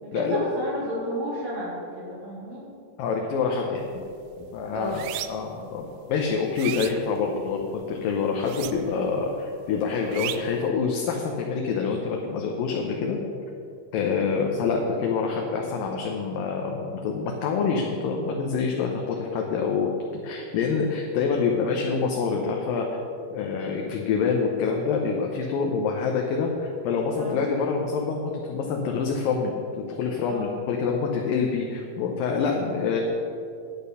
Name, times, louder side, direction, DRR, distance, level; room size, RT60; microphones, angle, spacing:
voice 1, 0.0-2.6 4.7-5.0 14.2-14.4 27.2-27.4 30.3-30.5, equal, 70° right, -8 dB, 4.9 m, -32 dB
voice 2, 3.0-3.9 4.5-5.0 5.3-13.2 13.9-23.0 23.3-29.5 29.9-33.0, left 5 dB, 75° left, 1 dB, 2.4 m, -26 dB
sound 1, 3.8-4.1 4.4-5.6 6.1-7.7 8.4-9.1 9.4-10.6, right 13 dB, 85° right, 2.4 m, -35 dB
10.5 x 8.6 x 5.5 m, 2.5 s
omnidirectional pair, 4.3 m